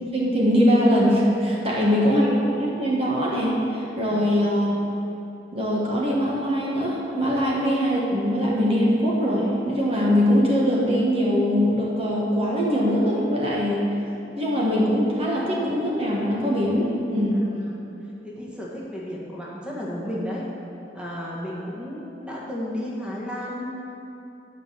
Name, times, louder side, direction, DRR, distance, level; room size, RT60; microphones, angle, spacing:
voice 1, 0.0-4.7 5.5-13.8 14.3-17.4, equal, 35° right, -4 dB, 1.4 m, -22 dB
voice 2, 1.7-2.3 4.1-4.5 17.3-17.9 18.2-20.4 20.9-23.7, equal, 5° right, -5 dB, 1.5 m, -33 dB
9.1 x 5.7 x 7.5 m, 2.8 s
head